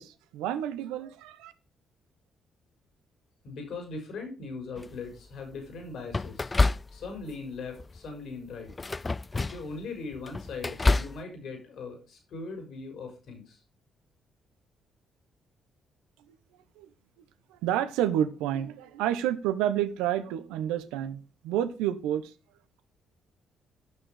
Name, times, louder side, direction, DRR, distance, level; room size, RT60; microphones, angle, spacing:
voice 1, 0.0-1.5 16.8-16.9 17.5-22.3, right 11 dB, 90° right, 1.0 m, -29 dB
voice 2, 3.4-6.5 6.9-8.7 9.3-13.6, left 4 dB, 70° left, 4.4 m, -40 dB
sound 1, 4.8-5.2 6.1-7.3 7.7-8.1 8.7-9.8 10.1-11.2, left 3 dB, 30° left, 0.4 m, -28 dB
12.0 x 6.4 x 4.9 m
supercardioid pair, 60°, 0 cm